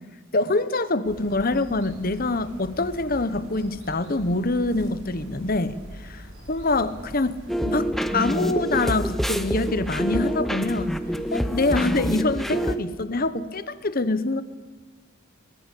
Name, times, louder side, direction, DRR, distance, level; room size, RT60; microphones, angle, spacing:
voice 1, 0.3-5.8 6.0-7.4 7.6-11.0 11.3-14.4, left 2 dB, 40° left, 13 dB, 1.1 m, -25 dB
sound 1, 1.0-12.8, equal, 65° right, 7.4 m, -44 dB
sound 2, 7.5-12.7, equal, ahead, 0.8 m, -26 dB
22.0 x 22.0 x 8.4 m, 1.3 s
head